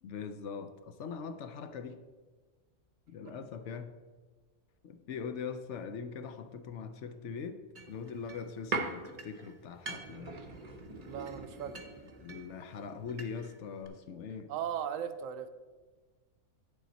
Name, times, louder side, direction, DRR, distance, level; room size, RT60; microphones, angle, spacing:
voice 1, 0.0-2.0 3.1-4.0 4.8-7.6 7.9-10.3 12.2-14.5, left 6 dB, 65° left, 9 dB, 0.9 m, -41 dB
sound 1, 7.8-13.6 13.8-13.9, right 3 dB, 35° right, 0.7 m, -42 dB
voice 2, 11.1-11.8 14.5-15.5, right 9 dB, 80° right, 10 dB, 1.0 m, -37 dB
8.7 x 7.0 x 4.1 m, 1.3 s
omnidirectional pair, 1.4 m